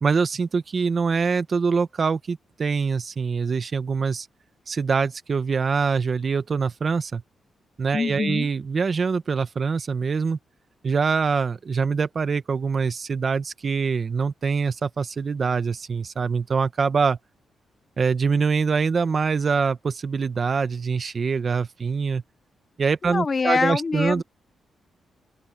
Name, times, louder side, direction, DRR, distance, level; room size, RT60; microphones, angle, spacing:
voice 1, 0.0-4.3 4.7-7.2 7.8-10.4 10.8-17.2 18.0-22.2 22.8-24.2, right 5 dB, 40° right, 1.2 m, -24 dB
voice 2, 7.9-8.5 23.0-24.2, left 4 dB, 30° left, 0.7 m, -24 dB
open air
cardioid pair, 130°, 0 cm